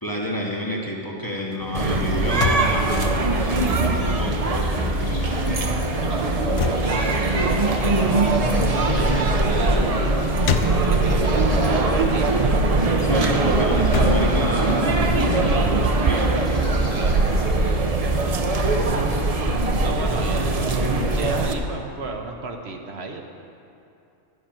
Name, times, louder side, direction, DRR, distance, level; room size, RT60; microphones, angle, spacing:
voice 1, 0.0-5.4 13.0-16.4, equal, 20° left, -2 dB, 1.0 m, -29 dB
sound 1, 1.4-4.2 4.5-11.3 11.8-15.3, left 8 dB, 85° left, 1.0 m, -32 dB
sound 2, 1.7-21.5, right 2 dB, 35° right, 0.7 m, -21 dB
sound 3, 4.2-17.8, left 1 dB, 65° left, 2.3 m, -41 dB
voice 2, 6.8-12.3 16.9-18.9 19.8-23.3, right 3 dB, 60° right, 3 dB, 1.0 m, -34 dB
11.0 x 5.8 x 8.8 m, 2.6 s
omnidirectional pair, 1.3 m